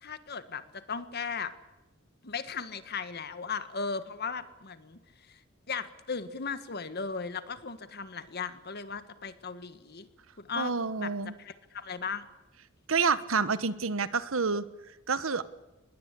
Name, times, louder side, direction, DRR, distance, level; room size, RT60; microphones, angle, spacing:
voice 1, 0.0-1.5 2.2-5.0 5.3-5.4 5.7-10.1 10.4-10.7 11.0-11.1 11.4-12.2, left 5 dB, 50° left, 11 dB, 1.6 m, -37 dB
voice 2, 10.6-11.3 12.9-14.6 15.1-15.4, right 4 dB, 80° right, 14 dB, 1.2 m, -28 dB
24.0 x 21.0 x 8.3 m, 1.1 s
head